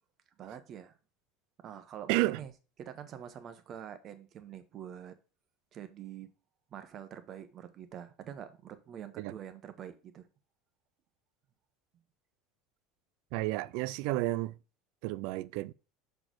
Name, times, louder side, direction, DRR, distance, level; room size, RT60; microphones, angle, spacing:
voice 1, 0.4-1.0 1.6-2.5 2.8-5.1 5.7-6.3 6.7-10.3, right 9 dB, 30° right, 0.9 m, -45 dB
voice 2, 2.1-2.4 9.2-9.3 13.3-14.5 15.0-15.7, right 18 dB, 60° right, 0.3 m, -31 dB
6.6 x 4.2 x 6.1 m
cardioid pair, 170°, 0 cm